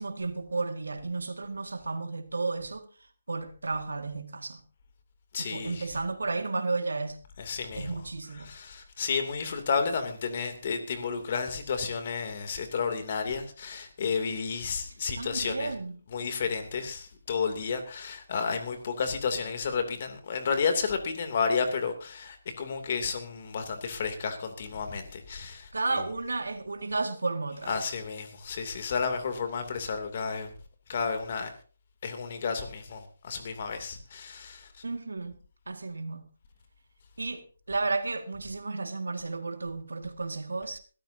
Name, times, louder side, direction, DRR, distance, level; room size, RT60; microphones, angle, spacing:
voice 1, 0.0-2.9 3.3-4.6 5.4-7.2 7.8-8.5 15.2-16.0 25.7-27.8 34.8-35.4 35.7-36.3 37.2-40.8, right 3 dB, 85° right, 1.9 m, -33 dB
voice 2, 5.3-5.9 7.4-7.9 8.4-15.7 16.1-26.0 27.7-30.5 30.9-31.5 32.0-34.7, left 5 dB, 45° left, 2.7 m, -32 dB
21.5 x 13.5 x 2.8 m
figure-of-eight pair, 155°, 0 cm